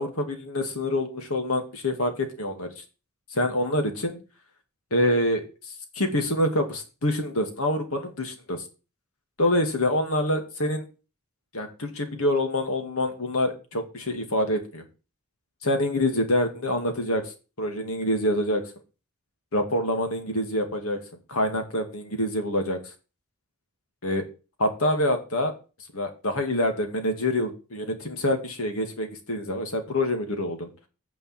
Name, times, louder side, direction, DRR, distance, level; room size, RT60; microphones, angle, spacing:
voice 1, 0.0-2.8 3.3-4.2 4.9-5.5 6.0-8.6 9.4-10.8 11.5-14.8 15.6-17.3 17.6-18.6 19.5-21.0 21.3-22.8 24.0-24.3 24.6-25.5 25.9-30.7, left 1 dB, 80° left, 6 dB, 2.2 m, -26 dB
9.1 x 5.5 x 7.6 m, 0.33 s
head